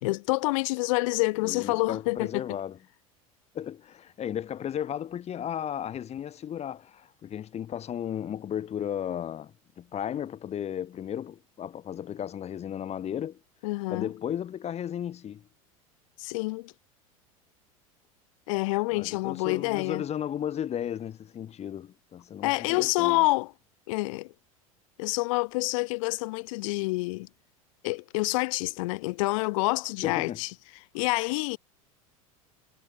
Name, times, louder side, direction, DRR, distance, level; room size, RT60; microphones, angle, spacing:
voice 1, 0.0-2.4 13.6-14.1 16.2-16.7 18.5-20.0 22.4-23.5 23.9-24.3 25.0-27.3 27.8-30.5 30.9-31.6, left 24 dB, 65° left, 2.9 m, -27 dB
voice 2, 1.4-2.8 3.5-13.4 13.9-15.4 18.9-23.2 30.0-30.4, left 9 dB, 35° left, 3.2 m, -34 dB
hypercardioid pair, 85°, 18 cm